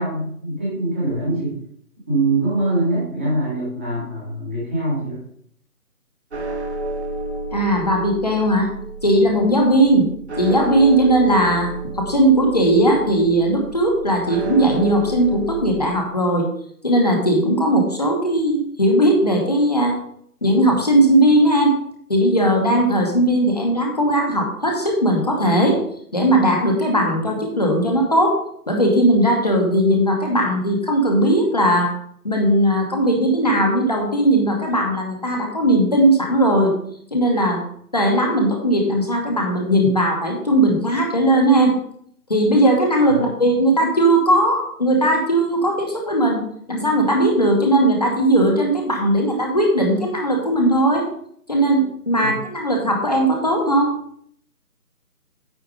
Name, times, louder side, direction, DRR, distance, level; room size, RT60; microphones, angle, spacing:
voice 1, 0.0-1.5 2.1-5.2 43.1-43.3 52.2-52.4, right 2 dB, 10° right, -8 dB, 1.2 m, -23 dB
sound 1, 6.3-15.9, right 2 dB, 45° right, 1.4 m, -31 dB
voice 2, 7.5-8.7 9.0-10.1 10.4-16.5 16.8-20.0 20.4-21.8 22.1-25.8 26.1-28.4 28.7-32.0 32.2-36.7 37.1-37.6 37.9-41.8 42.3-51.0 51.5-53.9, right 1 dB, 25° left, 0 dB, 1.0 m, -18 dB
9.0 x 4.3 x 4.8 m, 0.67 s
figure-of-eight pair, 160°, 46 cm